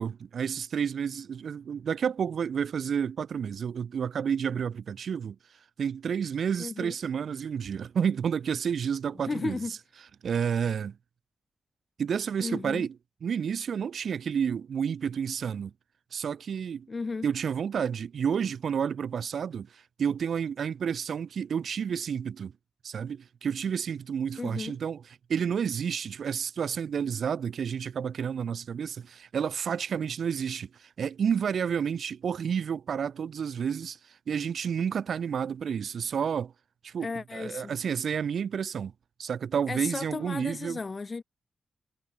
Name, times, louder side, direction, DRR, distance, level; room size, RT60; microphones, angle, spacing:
voice 1, 0.0-5.4 5.8-9.6 10.2-11.0 12.0-12.9 13.2-15.7 16.1-16.9 17.2-22.5 22.8-25.0 25.3-34.0 34.3-36.5 36.8-37.1 37.3-38.9 39.2-40.8, right 7 dB, 75° right, 4.3 m, -30 dB
voice 2, 6.6-6.9 9.2-9.7 12.4-12.9 16.9-17.3 24.4-24.8 37.0-37.7 39.7-41.2, left 4 dB, 30° left, 5.0 m, -34 dB
wide cardioid pair, 160°, 0 cm